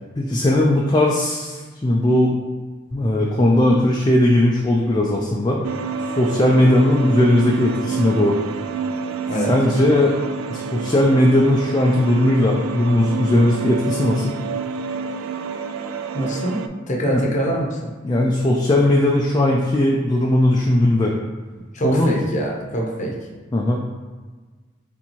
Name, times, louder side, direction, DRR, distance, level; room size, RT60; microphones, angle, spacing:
voice 1, 0.2-2.3 2.9-5.6 6.2-8.4 9.5-10.2 10.5-14.4 17.0-17.2 18.0-21.1 21.8-22.1 23.5-23.8, left 1 dB, 20° left, -2 dB, 0.3 m, -18 dB
sound 1, 5.6-16.7, right 4 dB, 90° right, 0.3 m, -28 dB
voice 2, 16.1-16.6 16.9-17.8 21.7-23.1, right 1 dB, 35° left, -2 dB, 0.7 m, -24 dB
4.3 x 3.4 x 2.9 m, 1.4 s
head